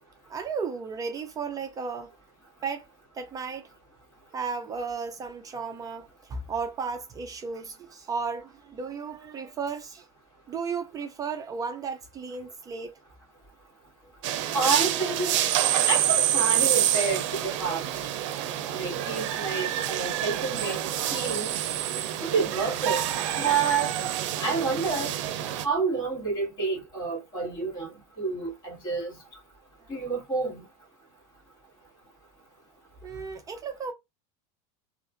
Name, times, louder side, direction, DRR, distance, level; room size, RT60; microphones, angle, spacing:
voice 1, 0.3-2.1 2.6-2.9 3.1-3.7 4.3-10.1 10.5-13.0 33.0-33.9, right 5 dB, 20° right, 0.4 m, -34 dB
sound 1, 14.2-25.7, right 11 dB, 85° right, 0.5 m, -27 dB
voice 2, 14.5-15.4 15.9-17.8 18.7-21.5 22.2-23.0 23.4-23.9 24.4-25.2 25.6-29.2 29.9-30.6, right 4 dB, 30° left, 1.9 m, -29 dB
2.8 x 2.5 x 2.4 m
supercardioid pair, 145°, 16 cm